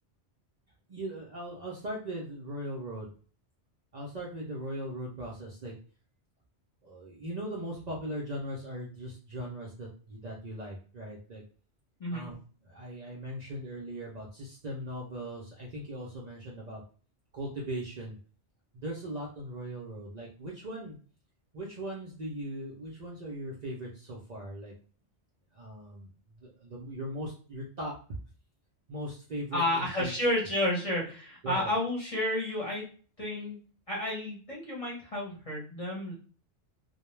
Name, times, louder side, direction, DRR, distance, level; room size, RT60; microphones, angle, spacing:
voice 1, 0.9-3.1 3.9-5.7 6.8-11.4 12.1-12.3 12.6-16.8 17.3-18.2 18.7-21.0 21.5-24.7 25.5-26.1 26.4-27.9 28.9-30.1 31.4-31.7, right 1 dB, 50° right, -4 dB, 0.5 m, -39 dB
voice 2, 29.5-32.9 33.2-33.6 33.9-36.1, left 1 dB, 35° left, -5 dB, 0.8 m, -31 dB
2.2 x 2.1 x 3.0 m, 0.41 s
omnidirectional pair, 1.2 m